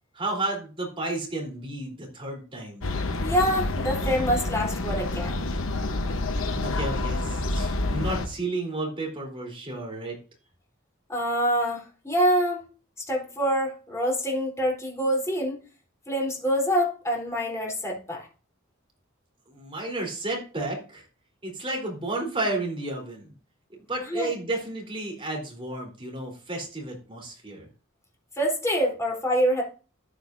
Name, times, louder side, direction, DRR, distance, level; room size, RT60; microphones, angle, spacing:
voice 1, 0.1-2.8 6.6-10.2 19.5-21.0 21.4-23.3 23.9-27.7, right 2 dB, 25° right, 0 dB, 3.7 m, -32 dB
sound 1, 2.8-8.3, left 2 dB, 75° left, 1.0 m, -28 dB
voice 2, 3.2-5.4 11.1-12.6 13.1-15.6 16.1-18.3 24.1-24.3 28.4-29.6, equal, 15° left, -1 dB, 3.7 m, -25 dB
13.5 x 9.3 x 2.7 m, 0.35 s
head